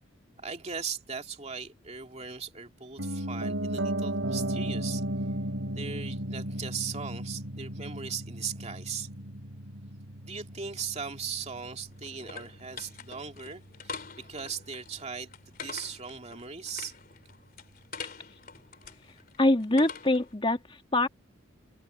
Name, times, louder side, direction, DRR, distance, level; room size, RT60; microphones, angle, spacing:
voice 1, 0.4-5.0 5.7-9.1 10.3-16.9, right 6 dB, 35° right, 2.5 m, -38 dB
Piano, 3.0-13.0 13.3-13.4, right 1 dB, 85° right, 3.2 m, -35 dB
sound 1, 11.3-20.3, left 5 dB, 50° left, 3.3 m, -45 dB
voice 2, 19.4-21.1, left 1 dB, 25° left, 2.2 m, -24 dB
head